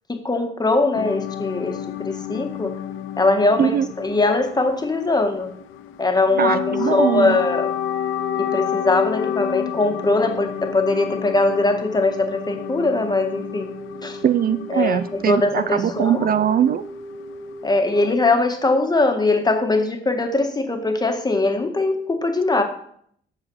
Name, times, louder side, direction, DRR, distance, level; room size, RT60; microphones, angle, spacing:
voice 1, 0.1-1.8 2.0-2.7 3.2-5.5 6.0-7.7 8.4-13.7 14.0-14.2 14.7-16.3 17.6-22.6, left 2 dB, 20° left, 5 dB, 1.8 m, -21 dB
sound 1, 0.9-18.2, left 10 dB, 90° left, 0.7 m, -31 dB
voice 2, 6.4-7.4 14.2-16.8, right 9 dB, 50° right, 13 dB, 0.5 m, -21 dB
sound 2, 8.2-18.2, equal, 5° left, 1.6 m, -38 dB
14.0 x 4.9 x 6.4 m, 0.66 s
cardioid pair, 90°, 20 cm